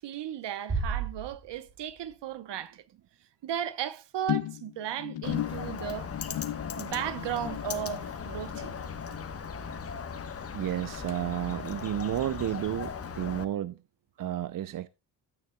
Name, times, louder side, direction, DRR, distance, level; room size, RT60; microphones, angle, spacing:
voice 1, 0.0-2.8 3.4-6.1 6.8-8.7, right 10 dB, 75° right, 1.0 m, -35 dB
sound 1, 0.7-2.6, right 5 dB, 35° right, 3.6 m, -34 dB
sound 2, 4.3-10.9 11.1-11.6 11.9-12.0, left 13 dB, 85° left, 0.8 m, -37 dB
Bird, 5.2-13.4, left 6 dB, 35° left, 1.1 m, -38 dB
voice 2, 10.5-13.8 14.2-14.9, right 12 dB, 50° right, 0.5 m, -32 dB
12.5 x 9.4 x 2.2 m
cardioid pair, 140°, 43 cm